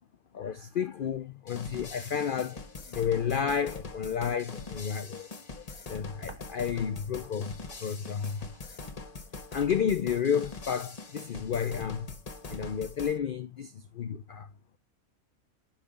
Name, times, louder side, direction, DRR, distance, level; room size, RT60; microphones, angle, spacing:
voice 1, 0.3-5.3 5.6-7.5 7.8-8.8 9.5-12.1 12.5-14.5, left 7 dB, 65° left, 0.5 m, -31 dB
sound 1, 1.5-13.2, left 3 dB, 30° left, 1.0 m, -43 dB
sound 2, 6.2-7.0 7.3-11.3 11.9-12.0 12.5-13.4, right 3 dB, 20° right, 1.0 m, -54 dB
10.5 x 5.5 x 2.3 m
omnidirectional pair, 1.5 m